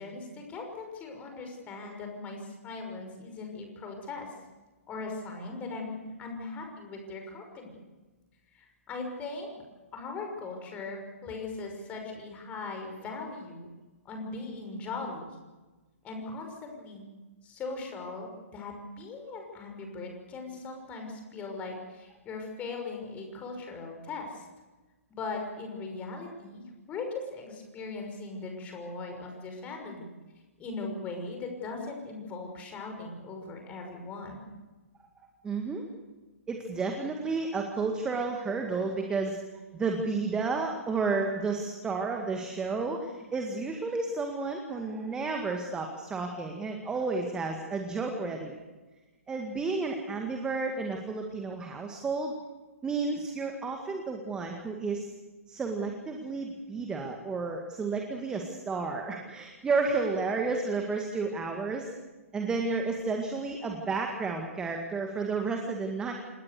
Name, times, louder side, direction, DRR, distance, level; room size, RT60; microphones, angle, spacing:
voice 1, 0.0-4.3 4.9-7.8 8.5-9.6 9.9-13.7 14.0-15.3 16.0-17.1 17.4-24.4 25.1-30.1 30.6-34.5, left 3 dB, 15° left, 3 dB, 6.0 m, -39 dB
voice 2, 35.4-35.8 36.5-39.4 39.7-48.6 49.3-52.3 52.8-55.1 55.5-61.9 62.3-66.1, right 4 dB, 10° right, 3 dB, 2.0 m, -31 dB
28.5 x 19.5 x 6.8 m, 1.2 s
figure-of-eight pair, 125°, 8 cm